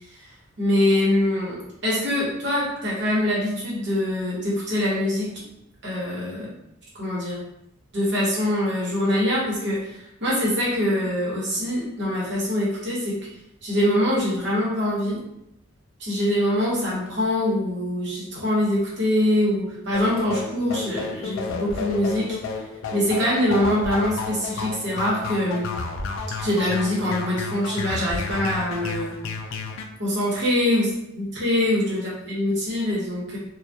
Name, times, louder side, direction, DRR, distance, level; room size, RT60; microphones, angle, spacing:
voice 1, 0.6-5.4 5.8-6.5 6.9-7.4 7.9-13.2 13.6-15.2 16.0-22.4 22.9-25.7 26.4-29.2 30.0-30.9 31.2-33.4, left 1 dB, 60° right, -5 dB, 0.9 m, -24 dB
sound 1, 19.9-29.9, left 4 dB, 80° left, 0.3 m, -32 dB
2.2 x 2.2 x 2.6 m, 0.81 s
head